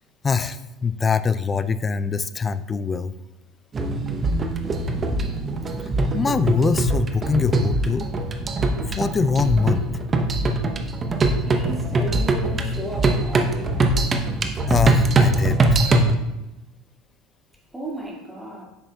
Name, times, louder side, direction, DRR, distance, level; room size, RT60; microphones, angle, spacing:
voice 1, 0.2-3.1 6.1-8.1 8.9-9.9 14.7-15.6, left 5 dB, 25° left, 14 dB, 0.3 m, -23 dB
sound 1, 3.7-16.1, right 2 dB, 30° right, 0.7 m, -22 dB
voice 2, 11.5-13.8 17.7-18.6, right 1 dB, 10° right, -2 dB, 2.0 m, -34 dB
8.9 x 6.0 x 2.3 m, 0.99 s
hypercardioid pair, 75°, 0 cm